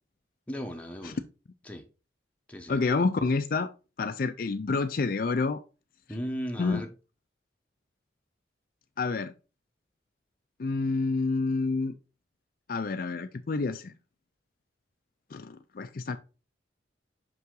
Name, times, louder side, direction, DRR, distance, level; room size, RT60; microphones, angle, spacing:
voice 1, 0.5-1.2 1.6-1.8 2.5-2.8 6.1-6.9, equal, 5° left, 1.0 m, -36 dB
voice 2, 2.7-3.7 4.0-5.6 6.6-6.8 9.0-9.3 10.6-12.0 12.7-13.9 15.3-16.2, left 4 dB, 50° left, 0.4 m, -28 dB
5.6 x 5.5 x 3.8 m
head